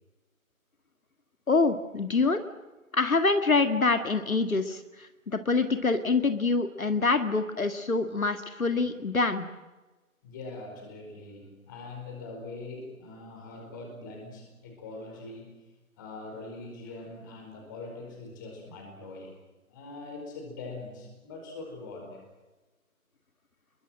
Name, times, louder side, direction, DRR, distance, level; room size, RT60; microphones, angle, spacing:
voice 1, 1.5-2.4 2.9-4.8 5.3-9.5, left 3 dB, 70° left, 8 dB, 2.1 m, -25 dB
voice 2, 10.2-15.6 16.0-19.3 19.7-22.3, left 3 dB, 15° left, 2 dB, 4.8 m, -42 dB
29.0 x 22.0 x 7.7 m, 1.2 s
figure-of-eight pair, 165°, 43 cm